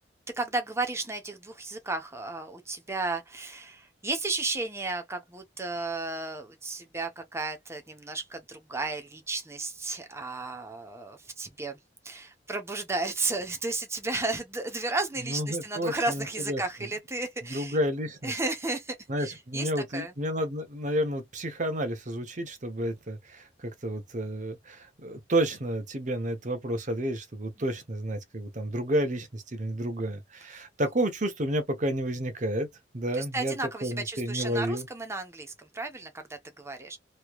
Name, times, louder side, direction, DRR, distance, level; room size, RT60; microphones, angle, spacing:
voice 1, 0.4-11.8 12.0-17.8 18.2-20.1 33.1-37.0, right 3 dB, 15° right, 0.8 m, -33 dB
voice 2, 15.2-16.9 17.5-18.3 19.1-32.7 32.9-33.6 33.8-34.9, right 1 dB, 45° right, 0.9 m, -31 dB
3.1 x 3.1 x 2.3 m
head